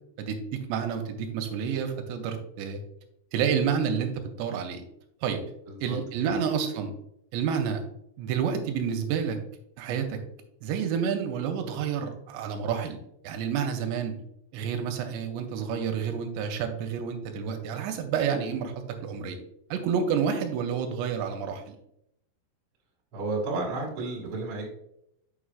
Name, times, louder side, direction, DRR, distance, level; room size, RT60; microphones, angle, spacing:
voice 1, 0.2-2.8 3.3-4.8 5.2-5.4 5.8-6.9 7.3-7.8 8.2-9.4 9.8-10.2 10.6-13.0 13.2-14.2 14.5-18.7 19.0-19.4 19.7-21.8, right 7 dB, 85° right, 4 dB, 2.8 m, -29 dB
voice 2, 5.7-6.4 23.1-24.7, right 2 dB, 45° right, -2 dB, 2.2 m, -32 dB
6.7 x 6.1 x 2.4 m, 0.77 s
omnidirectional pair, 5.0 m